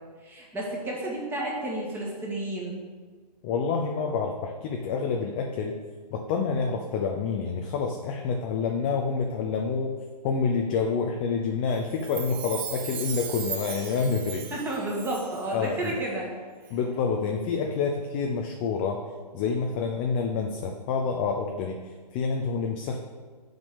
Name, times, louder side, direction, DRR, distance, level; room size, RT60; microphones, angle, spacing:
voice 1, 0.2-2.8 14.5-16.3, right 1 dB, 10° right, -3 dB, 1.7 m, -31 dB
voice 2, 3.4-5.8 6.1-14.4 15.5-16.0 16.7-19.0 19.3-23.0, left 5 dB, 15° left, 2 dB, 0.4 m, -28 dB
Chime, 11.9-15.5 15.8-15.9, right 8 dB, 35° right, 0.9 m, -37 dB
6.9 x 5.2 x 7.0 m, 1.5 s
figure-of-eight pair, 140°, 21 cm